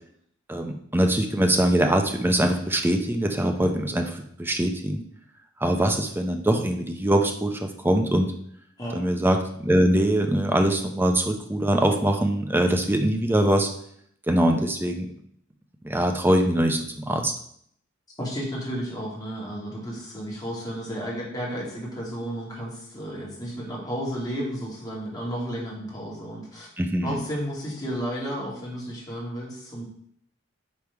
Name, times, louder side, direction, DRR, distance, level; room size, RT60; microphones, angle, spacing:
voice 1, 0.5-5.0 5.6-8.3 8.9-13.7 14.3-15.1 15.8-17.3 26.8-27.2, right 1 dB, 10° right, 4 dB, 0.6 m, -23 dB
voice 2, 18.2-26.7 27.0-29.8, equal, 20° left, -4 dB, 2.1 m, -32 dB
5.3 x 4.7 x 4.6 m, 0.66 s
head